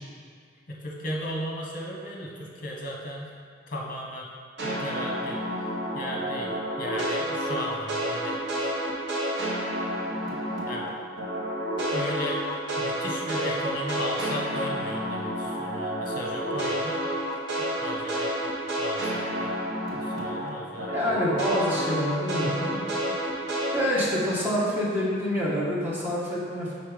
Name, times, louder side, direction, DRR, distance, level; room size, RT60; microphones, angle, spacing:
voice 1, 0.7-3.3 3.7-4.3 4.6-5.7 5.9-6.5 6.8-8.4 9.8-10.9 11.9-12.4 12.8-17.1 17.6-18.3 18.8-19.6 19.9-20.9, left 1 dB, 50° left, -1 dB, 1.0 m, -36 dB
sound 1, 4.6-10.9 11.2-20.5 20.8-23.8, right 1 dB, 80° right, 1.2 m, -30 dB
voice 2, 20.9-22.8 23.7-26.7, equal, 10° right, -8 dB, 1.3 m, -27 dB
5.4 x 4.1 x 5.1 m, 2.1 s
head